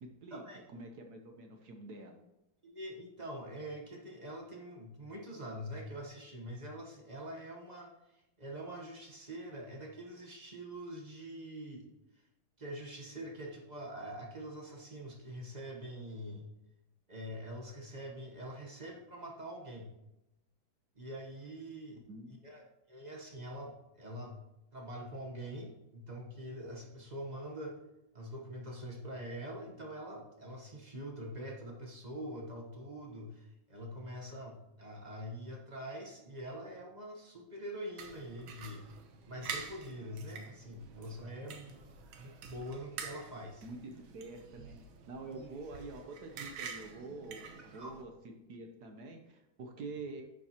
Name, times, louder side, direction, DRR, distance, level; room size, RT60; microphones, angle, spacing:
voice 1, 0.0-0.4 0.7-2.2 22.1-22.3 43.6-44.8 45.1-48.1 48.5-50.2, right 3 dB, 60° right, 4 dB, 1.2 m, -46 dB
voice 2, 2.6-11.9 12.6-16.4 17.1-19.9 20.9-22.0 22.3-22.6 22.9-24.4 24.7-27.7 28.1-38.8 39.2-41.8 42.1-43.6 45.3-45.5 47.7-48.0, equal, 30° right, 0 dB, 0.8 m, -44 dB
sound 1, 38.0-48.0, right 6 dB, 80° right, 1.7 m, -47 dB
11.0 x 7.0 x 2.9 m, 0.91 s
omnidirectional pair, 2.2 m